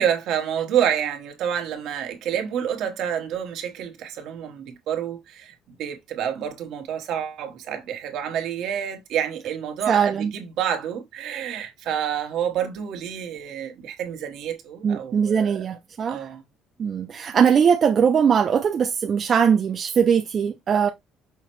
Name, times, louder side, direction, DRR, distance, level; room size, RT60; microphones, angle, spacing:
voice 1, 0.0-15.7 16.1-16.4, right 9 dB, 65° right, 1.1 m, -28 dB
voice 2, 9.9-10.3 14.8-16.3 16.8-20.9, right 7 dB, 35° right, 0.4 m, -20 dB
5.7 x 2.1 x 4.4 m
cardioid pair, 160°, 0 cm